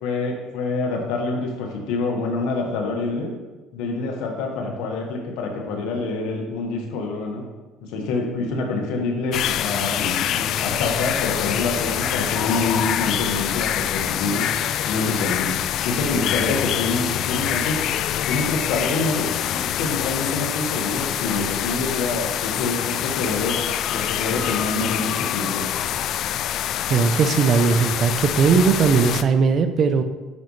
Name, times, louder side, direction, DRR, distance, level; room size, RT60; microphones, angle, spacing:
voice 1, 0.0-3.3 3.7-7.4 7.8-14.5 14.9-15.6 15.8-17.8 18.3-23.6 23.9-25.6, left 3 dB, 80° left, 1 dB, 1.6 m, -26 dB
sound 1, 9.3-29.2, left 11 dB, 60° left, 0.3 m, -25 dB
voice 2, 26.9-30.0, right 5 dB, 45° right, 8 dB, 0.6 m, -18 dB
9.3 x 5.4 x 3.2 m, 1.2 s
cardioid pair, 110°, 0 cm